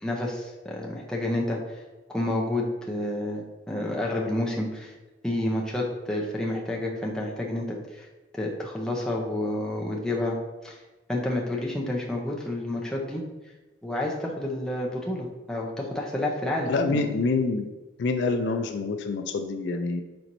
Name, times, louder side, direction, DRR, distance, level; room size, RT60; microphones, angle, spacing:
voice 1, 0.0-1.6 2.1-4.9 5.2-8.1 8.3-10.4 10.6-10.8 11.1-13.2 13.8-17.0, left 1 dB, 5° left, -3 dB, 0.5 m, -29 dB
voice 2, 16.7-17.7 18.0-20.0, left 3 dB, 65° left, 6 dB, 0.3 m, -26 dB
4.4 x 4.2 x 2.6 m, 1.2 s
head